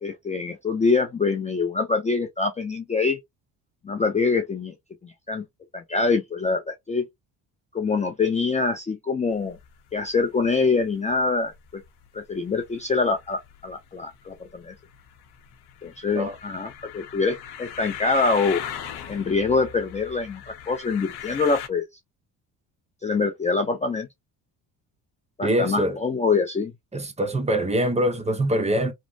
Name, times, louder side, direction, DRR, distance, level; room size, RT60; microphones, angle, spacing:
voice 1, 0.0-3.2 3.8-4.7 5.0-5.4 5.7-7.1 7.7-9.6 9.9-11.8 12.1-14.7 15.8-18.6 19.1-21.9 23.0-24.1 25.4-26.7, left 4 dB, 20° left, 0.5 m, -25 dB
sound 1, 9.3-21.7, left 9 dB, 75° left, 0.8 m, -39 dB
voice 2, 25.4-26.0 26.9-28.9, equal, 15° right, 0.7 m, -23 dB
3.0 x 2.1 x 2.6 m
cardioid pair, 100°, 40 cm